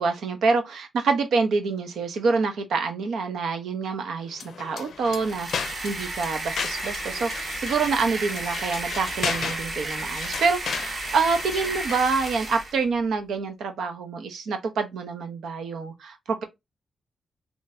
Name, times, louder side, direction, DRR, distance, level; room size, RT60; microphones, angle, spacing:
voice 1, 0.0-16.4, right 4 dB, 80° right, 1.0 m, -26 dB
sound 1, 4.3-12.4, left 7 dB, 70° left, 0.5 m, -35 dB
sound 2, 5.1-12.8, right 2 dB, 30° right, 1.1 m, -33 dB
3.9 x 3.1 x 2.7 m
wide cardioid pair, 150°, 0 cm